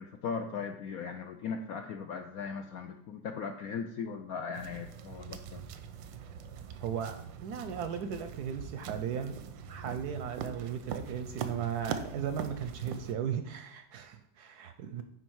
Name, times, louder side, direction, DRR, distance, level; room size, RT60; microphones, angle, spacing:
voice 1, 0.0-5.6, left 6 dB, 75° left, 6 dB, 0.8 m, -38 dB
sound 1, 4.5-13.1, right 7 dB, 85° right, 1.3 m, -43 dB
sound 2, 4.7-13.3, right 5 dB, 5° left, 0.6 m, -55 dB
voice 2, 6.8-9.4 9.7-15.0, right 8 dB, 70° right, 8 dB, 1.0 m, -36 dB
9.7 x 4.1 x 4.6 m, 0.72 s
omnidirectional pair, 2.0 m